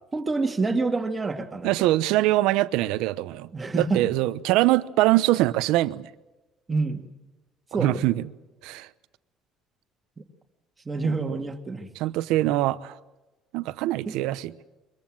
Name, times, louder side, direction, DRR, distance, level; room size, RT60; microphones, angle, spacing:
voice 1, 0.1-1.9 3.5-4.1 6.7-7.1 7.7-7.9 10.9-11.9 14.1-14.2, right 3 dB, 15° right, 2.4 m, -27 dB
voice 2, 1.6-3.5 3.7-6.1 7.8-8.2 8.6-8.9 11.0-11.4 12.0-12.9 13.5-14.5, right 16 dB, 85° right, 0.9 m, -23 dB
24.0 x 22.0 x 7.5 m
cardioid pair, 145°, 0 cm